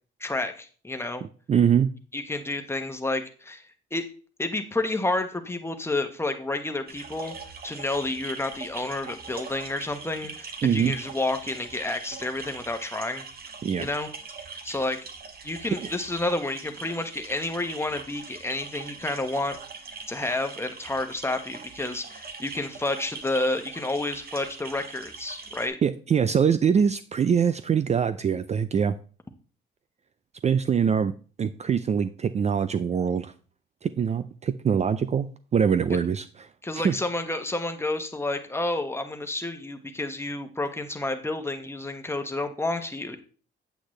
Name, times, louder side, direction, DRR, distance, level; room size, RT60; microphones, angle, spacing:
voice 1, 0.2-1.2 2.1-3.7 3.9-4.1 4.4-7.3 7.6-13.3 13.8-14.1 14.6-15.0 15.4-19.6 20.1-25.8 35.9-36.0 36.6-43.2, left 2 dB, 10° left, 6 dB, 1.1 m, -30 dB
voice 2, 1.5-1.9 10.6-10.9 13.6-13.9 15.8-15.9 25.8-29.0 30.4-31.1 31.4-33.3 33.8-36.5 36.8-36.9, right 7 dB, 35° right, 13 dB, 0.4 m, -23 dB
sound 1, 6.9-25.7, right 5 dB, 50° right, 1.5 m, -42 dB
8.4 x 8.0 x 3.2 m, 0.40 s
cardioid pair, 90°, 20 cm